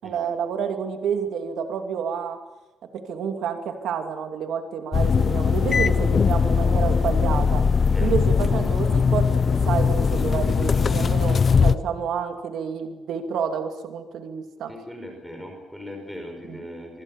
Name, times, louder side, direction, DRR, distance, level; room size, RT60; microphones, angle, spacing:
voice 1, 0.0-2.4 2.9-7.6 8.0-14.7 16.5-16.6, right 7 dB, 80° right, 6 dB, 2.7 m, -29 dB
sound 1, 4.9-11.8, left 5 dB, 35° left, 0.8 m, -20 dB
voice 2, 14.7-17.0, equal, ahead, 2 dB, 5.2 m, -39 dB
25.0 x 24.5 x 7.2 m, 1.1 s
cardioid pair, 155°, 0 cm